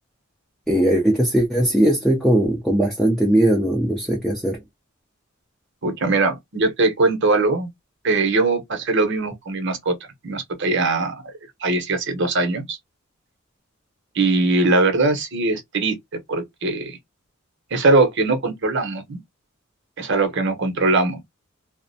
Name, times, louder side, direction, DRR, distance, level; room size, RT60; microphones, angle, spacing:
voice 1, 0.7-4.6, right 1 dB, ahead, 0.5 m, -19 dB
voice 2, 5.8-7.7 8.0-9.9 10.2-11.2 11.6-12.8 14.1-16.0 16.3-17.0 17.7-19.2 20.0-21.2, right 3 dB, 60° right, 0.8 m, -21 dB
2.4 x 2.1 x 2.5 m
head